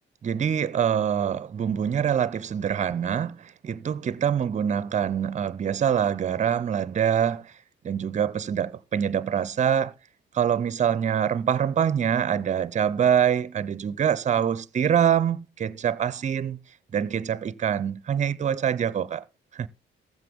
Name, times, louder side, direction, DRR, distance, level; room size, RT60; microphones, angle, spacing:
voice 1, 0.2-7.5 7.8-9.9 10.3-16.6 16.9-19.2 19.5-19.7, right 8 dB, 35° right, 0.5 m, -25 dB
15.5 x 7.5 x 3.5 m
cardioid pair, 90°, 20 cm